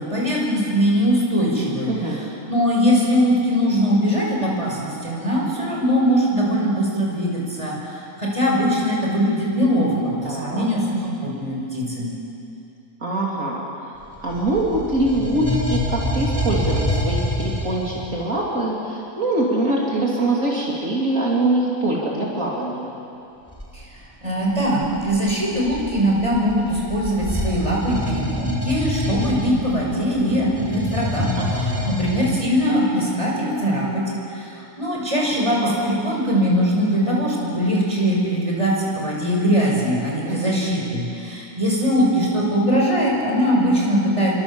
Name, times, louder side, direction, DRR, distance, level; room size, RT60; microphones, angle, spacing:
voice 1, 0.0-1.9 2.5-12.2 23.7-31.3 31.9-44.3, equal, 25° right, -3 dB, 6.2 m, -21 dB
voice 2, 1.9-2.2 10.2-10.7 13.0-14.0 14.2-22.9 31.4-32.0 35.2-35.7 40.3-40.5, right 2 dB, 70° right, -4 dB, 3.9 m, -24 dB
sound 1, 14.0-18.2 23.5-23.7 24.5-32.3, left 1 dB, 10° left, 4.3 m, -27 dB
29.5 x 24.0 x 7.3 m, 2.7 s
omnidirectional pair, 1.4 m